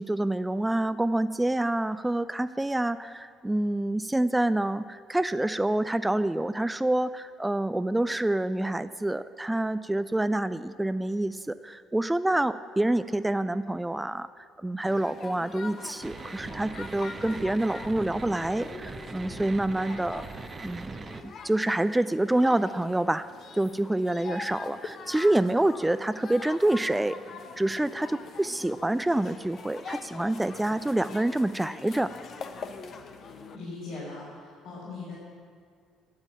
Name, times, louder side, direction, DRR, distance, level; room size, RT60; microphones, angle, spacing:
voice 1, 0.0-20.3 20.6-23.3 23.5-27.2 27.6-32.1, right 1 dB, 10° right, 12 dB, 0.4 m, -27 dB
sound 1, 14.9-33.6, left 5 dB, 50° left, 0.9 m, -44 dB
sound 2, 16.0-21.2, right 4 dB, 35° right, 0.9 m, -41 dB
voice 2, 33.5-35.1, left 3 dB, 70° left, -8 dB, 4.7 m, -39 dB
12.0 x 8.9 x 8.9 m, 2.1 s
hypercardioid pair, 55°, 0 cm